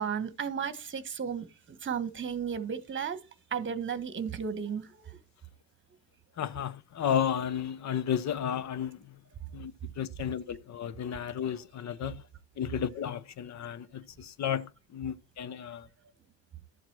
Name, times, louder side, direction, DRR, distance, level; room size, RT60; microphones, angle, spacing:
voice 1, 0.0-3.2 3.5-5.2, right 7 dB, 25° right, 1.3 m, -34 dB
voice 2, 6.4-9.2 9.5-12.2 12.6-15.9, left 9 dB, 40° left, 0.8 m, -33 dB
12.5 x 7.5 x 4.3 m
figure-of-eight pair, 55°, 45 cm